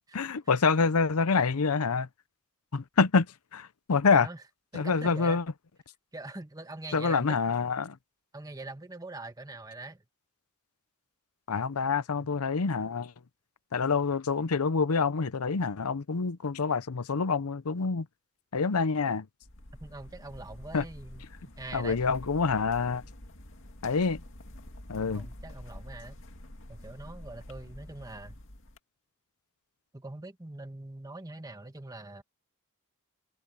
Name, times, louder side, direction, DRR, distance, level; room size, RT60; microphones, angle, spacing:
voice 1, 0.0-2.1 2.7-3.3 3.5-4.3 4.7-5.4 6.9-8.0 11.5-13.1 13.7-18.1 18.5-19.3 20.7-20.8 21.7-23.0 23.8-24.2 24.9-25.2, left 4 dB, 80° left, 0.7 m, -26 dB
voice 2, 4.7-5.4 6.1-7.4 8.3-10.0 12.2-12.3 19.8-22.0 25.0-26.2 26.7-28.4 29.9-32.2, right 2 dB, 15° right, 1.3 m, -43 dB
sound 1, 19.4-28.8, left 1 dB, 60° left, 2.3 m, -47 dB
head